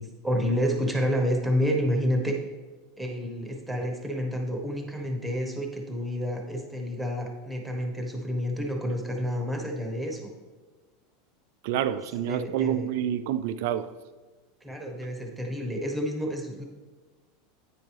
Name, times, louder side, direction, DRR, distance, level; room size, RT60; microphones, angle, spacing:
voice 1, 0.2-2.4 3.0-10.3 12.2-12.9 14.6-16.7, equal, 5° right, 2 dB, 1.2 m, -29 dB
voice 2, 11.6-13.9, right 10 dB, 65° right, 11 dB, 0.3 m, -28 dB
9.1 x 4.4 x 3.4 m, 1.3 s
hypercardioid pair, 100°, 0 cm